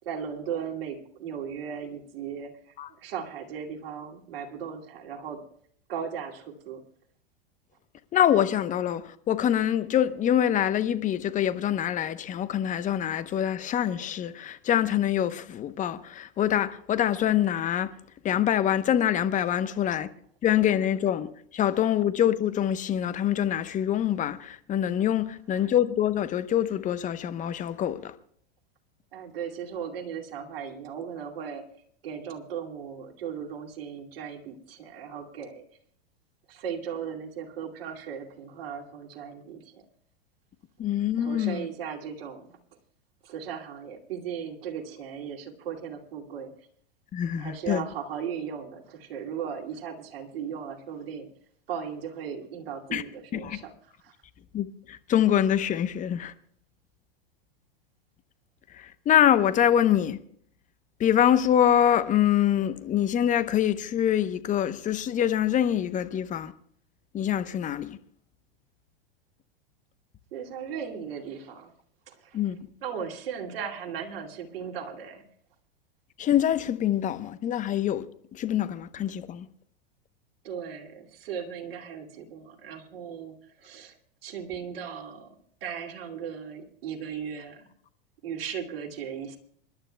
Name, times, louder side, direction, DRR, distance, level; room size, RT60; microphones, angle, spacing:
voice 1, 0.0-2.5 3.0-5.4 5.9-6.8 29.1-31.6 32.0-35.6 36.5-39.8 41.2-42.6 43.2-46.5 47.4-51.3 51.7-53.7 54.0-54.1 70.3-71.7 72.1-72.4 72.8-75.2 80.4-83.9 84.2-85.3 85.6-87.7 88.2-89.4, right 7 dB, 70° right, 2.5 m, -37 dB
voice 2, 8.1-17.9 18.2-20.1 20.4-28.1 40.8-41.6 47.1-47.8 52.9-53.0 53.4-53.6 54.5-56.3 58.8-60.2 61.0-66.5 67.1-68.0 72.3-72.6 76.2-78.0 78.3-79.5, left 10 dB, 25° left, 0.9 m, -25 dB
27.0 x 12.0 x 2.2 m
hypercardioid pair, 110°, 30 cm